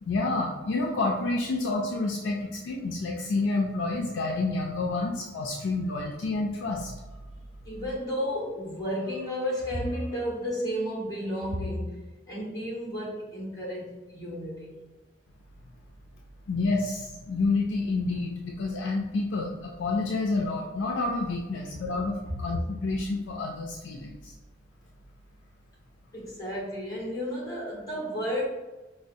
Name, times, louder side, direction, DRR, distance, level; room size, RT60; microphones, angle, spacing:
voice 1, 0.0-6.9 16.5-24.3, left 3 dB, 85° left, -1 dB, 0.4 m, -29 dB
voice 2, 7.6-14.8 21.5-21.6 26.1-28.5, equal, 20° left, -5 dB, 1.2 m, -32 dB
4.9 x 2.0 x 2.6 m, 1.1 s
head